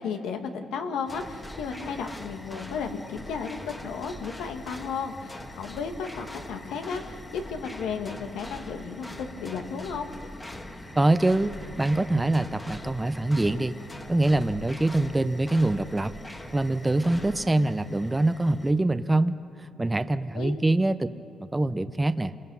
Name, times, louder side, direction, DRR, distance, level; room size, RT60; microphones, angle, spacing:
voice 1, 0.0-10.1 20.3-20.5, left 6 dB, 85° left, 4 dB, 1.8 m, -34 dB
sound 1, 1.1-18.7, left 1 dB, 20° left, 1.6 m, -42 dB
voice 2, 11.0-13.8 14.1-16.1 16.5-21.1 21.4-22.3, right 2 dB, 15° right, 12 dB, 0.7 m, -24 dB
29.0 x 22.0 x 5.5 m, 2.5 s
cardioid pair, 90°, 0 cm